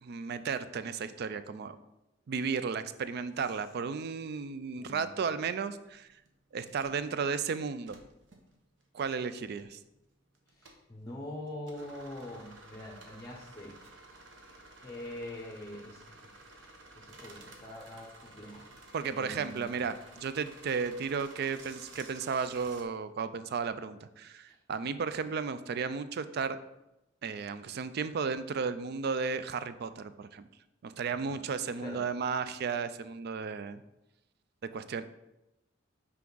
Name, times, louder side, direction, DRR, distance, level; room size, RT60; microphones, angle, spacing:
voice 1, 0.0-1.8 2.3-6.1 6.5-8.0 8.9-9.8 18.9-26.6 27.2-30.5 30.8-33.8 34.7-35.0, right 5 dB, 55° right, 13 dB, 0.4 m, -34 dB
voice 2, 4.8-5.2 10.5-13.8 14.8-16.2 16.5-18.7 19.1-19.8 31.1-31.4 31.8-32.0, left 1 dB, 20° left, 1 dB, 0.7 m, -44 dB
sound 1, 5.1-22.8, right 2 dB, 70° right, 0.9 m, -54 dB
5.9 x 4.6 x 3.9 m, 0.91 s
head